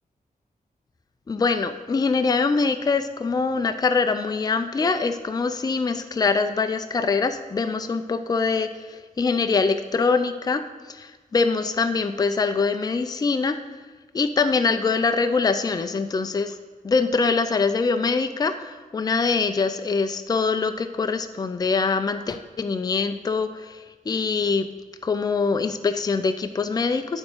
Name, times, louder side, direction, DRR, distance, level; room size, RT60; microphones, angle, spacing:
voice 1, 1.3-8.7 9.2-10.6 10.9-13.6 14.1-16.6 16.8-23.8 24.1-24.7 25.0-27.2, left 4 dB, 25° left, 8 dB, 0.4 m, -23 dB
9.8 x 3.6 x 6.6 m, 1.4 s
wide cardioid pair, 125°, 15 cm